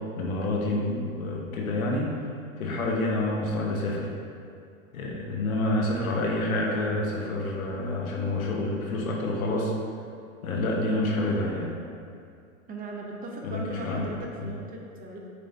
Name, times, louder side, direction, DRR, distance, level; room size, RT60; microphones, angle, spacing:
voice 1, 0.2-2.1 2.6-4.1 4.9-9.7 10.4-11.7 13.4-14.1, left 2 dB, 80° left, -2 dB, 1.5 m, -28 dB
voice 2, 12.7-15.2, right 2 dB, 20° right, -1 dB, 0.9 m, -38 dB
8.3 x 3.3 x 4.2 m, 2.4 s
hypercardioid pair, 110°, 42 cm